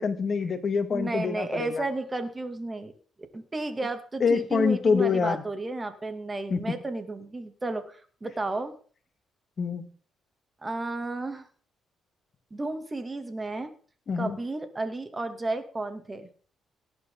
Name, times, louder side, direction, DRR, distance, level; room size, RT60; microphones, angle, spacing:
voice 1, 0.0-1.8 4.2-5.4 6.5-6.7 9.6-9.9 14.1-14.4, left 5 dB, 50° left, 9 dB, 2.1 m, -25 dB
voice 2, 0.9-2.9 3.3-8.8 10.6-11.5 12.5-13.7 14.2-16.3, right 2 dB, 20° right, 7 dB, 2.7 m, -33 dB
18.0 x 10.5 x 4.0 m, 0.42 s
cardioid pair, 90°, 0 cm